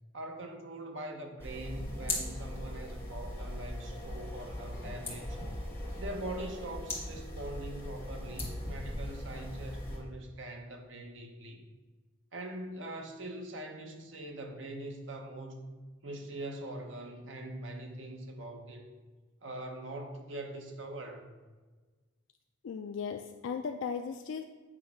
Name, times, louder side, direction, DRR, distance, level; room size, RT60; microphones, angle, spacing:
voice 1, 0.1-5.4 6.0-11.6 12.3-15.7 16.0-18.9 19.4-21.4, right 1 dB, 80° right, 3 dB, 1.0 m, -42 dB
sound 1, 1.4-10.0, left 1 dB, 15° left, 1.5 m, -39 dB
voice 2, 22.6-24.4, left 6 dB, 80° left, 5 dB, 0.4 m, -37 dB
8.4 x 3.2 x 5.7 m, 1.3 s
head